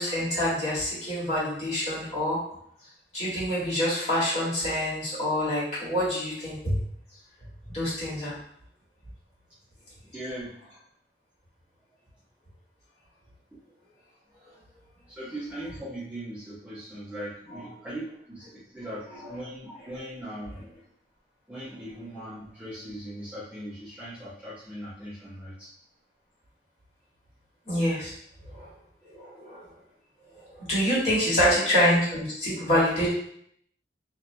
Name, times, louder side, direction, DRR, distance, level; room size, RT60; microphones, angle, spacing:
voice 1, 0.0-2.4 3.1-6.8 7.7-8.3 17.5-17.6 27.7-28.1 28.5-28.7 29.0-29.6 30.3-33.1, equal, 40° left, -10 dB, 1.4 m, -26 dB
voice 2, 10.0-10.5 13.5-13.6 15.1-20.6 21.5-25.7 31.3-31.6, right 1 dB, 10° right, -11 dB, 0.7 m, -39 dB
2.7 x 2.5 x 2.2 m, 0.69 s
head